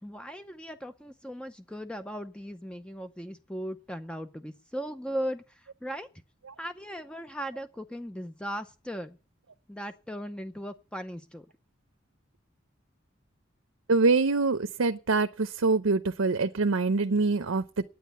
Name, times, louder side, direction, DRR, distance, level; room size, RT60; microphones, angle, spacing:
voice 1, 0.0-6.1 6.6-9.2 9.7-11.5, equal, 5° left, 0.6 m, -38 dB
voice 2, 13.9-17.8, right 3 dB, 85° right, 0.7 m, -25 dB
9.2 x 9.2 x 9.4 m
head